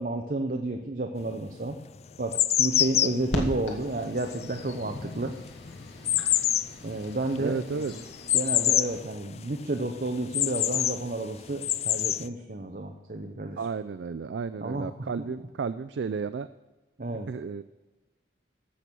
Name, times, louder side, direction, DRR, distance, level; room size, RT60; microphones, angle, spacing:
voice 1, 0.0-1.8 2.2-2.3 2.6-5.3 6.8-8.0 8.3-13.6 14.6-14.9 15.2-15.3 17.0-17.3, right 2 dB, 50° right, 4 dB, 0.8 m, -31 dB
sound 1, 1.2-1.3 1.9-9.1 9.4-9.5 9.8-11.0 11.5-12.3, left 11 dB, 35° left, 0.3 m, -27 dB
sound 2, 3.3-9.0, equal, 90° left, 2.2 m, -39 dB
voice 2, 7.4-7.9 13.6-16.5 17.3-17.6, right 5 dB, 80° right, 13 dB, 0.4 m, -32 dB
14.5 x 6.2 x 6.8 m, 1.2 s
head